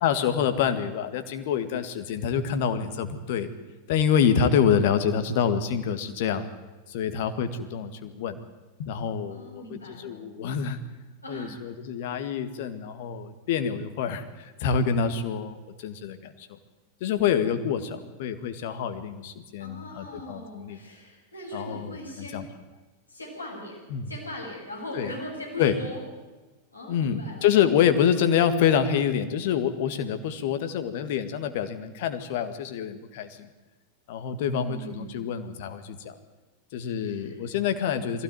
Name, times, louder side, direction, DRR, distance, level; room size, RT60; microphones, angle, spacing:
voice 1, 0.0-3.5 3.9-6.5 6.9-8.4 8.8-10.8 11.3-16.6 17.0-20.8 21.5-22.5 23.9-24.1 24.9-25.1 25.6-25.7 26.9-33.5 34.1-36.1 36.7-38.2, left 8 dB, 50° left, 9 dB, 1.9 m, -26 dB
voice 2, 9.3-10.3 11.2-11.6 19.6-22.4 23.1-26.0 26.7-27.5 34.5-35.5 37.0-37.5, equal, 85° left, -3 dB, 7.7 m, -40 dB
21.5 x 16.0 x 9.3 m, 1.2 s
figure-of-eight pair, 90°, 0 cm